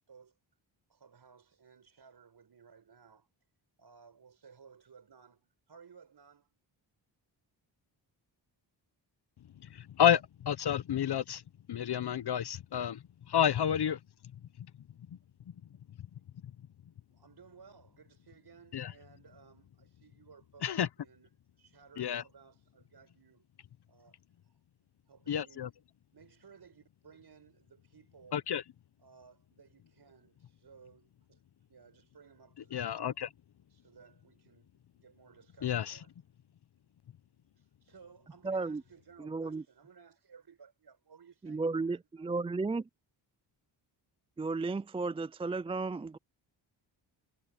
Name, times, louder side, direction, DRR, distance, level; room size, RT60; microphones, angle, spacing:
voice 1, 0.9-3.3 3.8-6.6 11.3-11.4 17.1-21.3 21.6-23.5 23.9-24.2 24.4-24.6 25.1-25.7 26.1-28.5 29.0-31.4 31.7-33.2 33.7-36.1 37.6-42.3, right 6 dB, 55° right, 5.3 m, -59 dB
voice 2, 10.0-11.4 11.7-13.0 13.3-14.0 18.7-18.9 20.6-20.9 22.0-22.2 25.3-25.7 28.3-28.6 32.7-33.3 35.6-36.0, left 9 dB, 55° left, 0.9 m, -29 dB
voice 3, 38.4-38.8 39.2-39.6 41.4-42.9 44.4-46.2, right 3 dB, 15° right, 0.3 m, -34 dB
cardioid pair, 60°, 48 cm